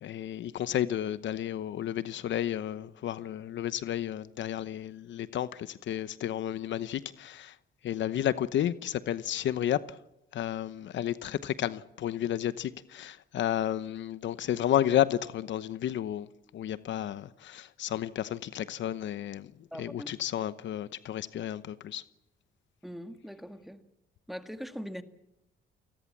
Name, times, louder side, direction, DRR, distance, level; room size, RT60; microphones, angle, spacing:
voice 1, 0.0-7.5 7.8-10.0 10.3-16.3 16.5-19.5 19.8-22.0, left 11 dB, 70° left, 0.9 m, -32 dB
voice 2, 19.7-20.2 22.8-23.8 24.3-25.0, equal, ahead, 1.9 m, -41 dB
29.0 x 19.5 x 7.5 m
cardioid pair, 90°, 20 cm